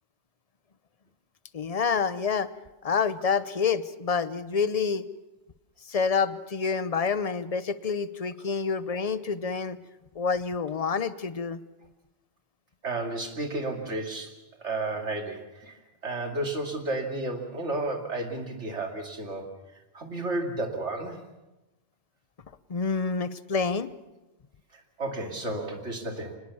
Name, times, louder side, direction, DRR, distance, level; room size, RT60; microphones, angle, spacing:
voice 1, 1.5-2.5 2.8-5.1 5.9-9.8 10.1-11.6 22.7-23.9, left 5 dB, 35° left, 14 dB, 0.8 m, -27 dB
voice 2, 12.8-14.3 14.6-19.5 19.9-21.2 24.7-26.4, right 2 dB, 85° right, 3 dB, 3.0 m, -32 dB
24.0 x 20.5 x 7.1 m, 1.0 s
omnidirectional pair, 1.2 m